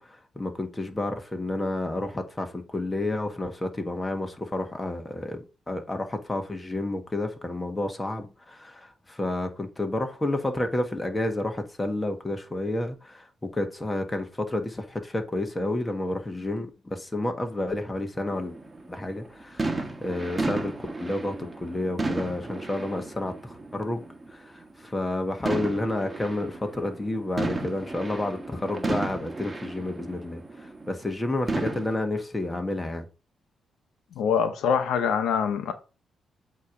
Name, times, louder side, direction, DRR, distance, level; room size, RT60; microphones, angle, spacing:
voice 1, 0.0-18.5 18.9-24.0 24.3-33.1, left 2 dB, 15° left, 1.5 m, -30 dB
sound 1, 18.3-24.3 24.6-24.9 25.5-31.1 31.5-31.9, right 2 dB, 20° right, 1.4 m, -33 dB
voice 2, 34.2-35.7, left 7 dB, 85° left, 0.8 m, -24 dB
8.2 x 3.1 x 4.9 m
cardioid pair, 85°, 0 cm